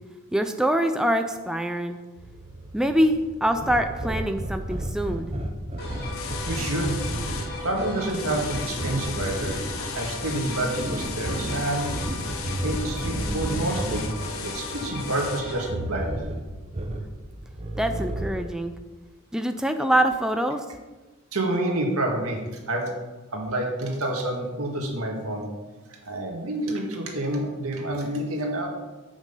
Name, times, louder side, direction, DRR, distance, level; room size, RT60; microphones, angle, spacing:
voice 1, 0.3-2.0 2.7-5.3 17.8-18.7 19.3-20.6, right 1 dB, 5° right, 6 dB, 0.3 m, -24 dB
sound 1, 2.2-18.5, right 1 dB, 30° right, 0.7 m, -33 dB
sound 2, 5.8-15.7, left 1 dB, 45° left, 2.2 m, -36 dB
sound 3, 6.1-7.5 8.1-15.4, left 7 dB, 70° left, 0.8 m, -38 dB
voice 2, 6.5-7.0 7.6-9.6 9.9-11.9 12.6-14.1 14.4-16.1 21.3-22.4 22.7-22.9 23.3-25.5 26.1-28.7, right 1 dB, 80° right, 0 dB, 1.9 m, -28 dB
7.6 x 6.1 x 5.5 m, 1.2 s
head